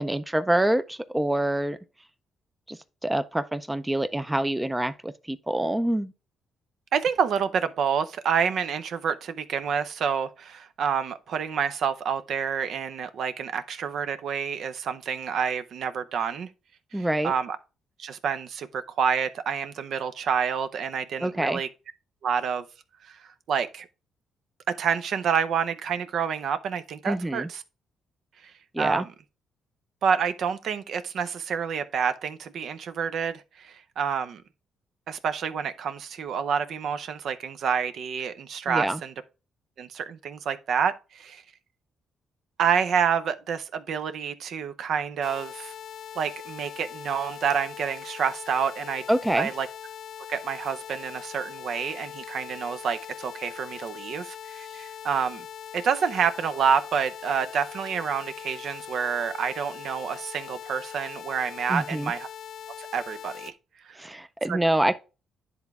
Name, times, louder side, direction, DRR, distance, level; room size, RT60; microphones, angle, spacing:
voice 1, 0.0-1.8 2.7-6.1 16.9-17.3 21.2-21.6 27.0-27.5 28.7-29.1 38.7-39.0 49.1-49.5 61.7-62.1 64.0-65.0, right 1 dB, 10° right, 0.4 m, -26 dB
voice 2, 6.9-16.5 16.9-17.6 18.0-21.7 22.2-22.6 23.0-23.2 23.5-23.9 24.7-27.6 28.8-29.1 30.0-34.4 35.1-39.1 39.8-41.4 42.6-45.7 46.2-49.0 49.3-49.7 50.3-55.5 55.7-62.3 62.8-63.5 63.9-64.0 64.5-64.6, right 7 dB, 65° right, 0.5 m, -28 dB
sound 1, 45.2-63.5, left 9 dB, 65° left, 0.5 m, -41 dB
10.5 x 3.5 x 3.5 m
cardioid pair, 90°, 0 cm